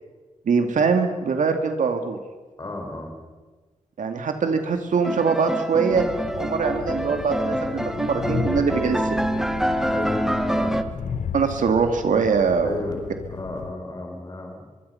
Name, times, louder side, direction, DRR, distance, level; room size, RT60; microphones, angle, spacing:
voice 1, 0.5-2.2 4.0-6.0 6.3-9.0 11.3-12.7, right 5 dB, 80° right, 6 dB, 2.3 m, -22 dB
voice 2, 2.6-3.1 9.9-10.8 12.6-13.0 13.3-14.6, left 2 dB, 30° left, 3 dB, 4.6 m, -32 dB
sound 1, 5.0-10.8, equal, 5° right, 1.2 m, -26 dB
Train, 5.9-13.7, left 6 dB, 75° left, 1.2 m, -34 dB
24.5 x 23.5 x 5.7 m, 1.3 s
wide cardioid pair, 145°, 13 cm